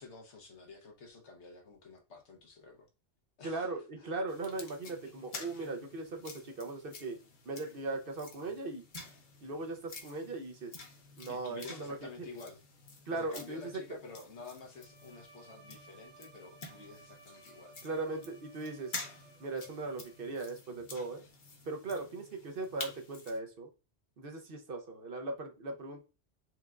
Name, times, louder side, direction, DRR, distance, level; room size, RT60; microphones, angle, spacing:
voice 1, 0.0-2.9 3.4-4.2 11.3-12.6 13.1-17.7, left 3 dB, 70° left, 1.3 m, -50 dB
voice 2, 3.4-7.2 7.5-8.8 9.4-10.8 11.2-12.0 13.1-13.6 17.8-18.9 19.4-21.2 21.7-23.7 24.2-26.0, right 3 dB, 55° right, 0.9 m, -39 dB
sound 1, 4.3-23.4, left 3 dB, 45° left, 0.9 m, -49 dB
Bowed string instrument, 14.7-20.5, right 4 dB, 25° right, 0.6 m, -60 dB
4.5 x 3.4 x 2.4 m
omnidirectional pair, 1.2 m